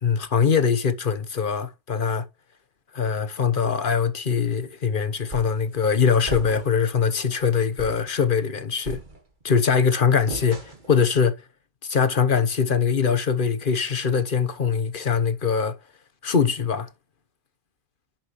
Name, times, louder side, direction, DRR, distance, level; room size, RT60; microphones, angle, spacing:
voice 1, 0.0-2.3 2.9-9.0 9.4-10.6 10.9-11.4 11.8-15.8 16.2-16.9, left 6 dB, 50° left, 1.2 m, -22 dB
sound 1, 5.3-5.7 6.3-6.9 7.3-7.4 7.8-8.1 8.8-9.5 10.3-11.0, right 2 dB, 45° right, 2.2 m, -37 dB
11.0 x 7.4 x 3.1 m
omnidirectional pair, 1.2 m